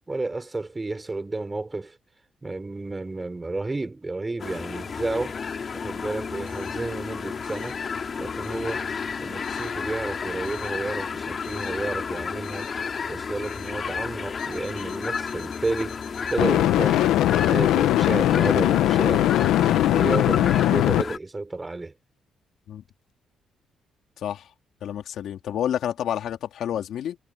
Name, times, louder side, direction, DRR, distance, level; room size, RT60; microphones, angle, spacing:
voice 1, 0.1-2.0 2.4-5.4 5.7-7.8 8.2-8.9 9.2-12.7 13.1-16.0 16.3-19.5 19.9-21.9, right 2 dB, 20° right, 4.8 m, -31 dB
sound 1, 4.4-21.2, left 6 dB, 45° left, 2.9 m, -32 dB
sound 2, 11.5-11.7 16.4-21.0, left 13 dB, 90° left, 1.0 m, -20 dB
voice 2, 24.2-24.5 24.8-27.2, left 10 dB, 70° left, 3.3 m, -29 dB
cardioid pair, 90°, 0 cm